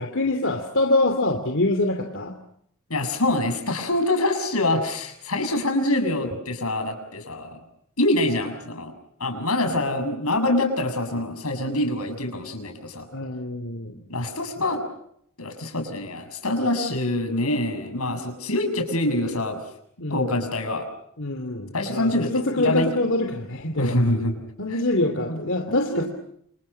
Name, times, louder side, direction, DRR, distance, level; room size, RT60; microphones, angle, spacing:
voice 1, 0.0-2.3 13.1-13.9 14.6-14.7 20.0-20.3 21.2-23.9 24.6-26.1, left 2 dB, 60° left, 5 dB, 2.7 m, -25 dB
voice 2, 2.9-7.6 8.0-8.9 9.2-13.1 14.1-14.8 15.4-19.6 20.1-20.9 21.7-22.9 23.8-24.4 24.7-24.8 25.2-25.4 25.7-26.1, left 1 dB, 85° left, 6 dB, 7.0 m, -25 dB
28.5 x 28.5 x 5.7 m, 0.72 s
head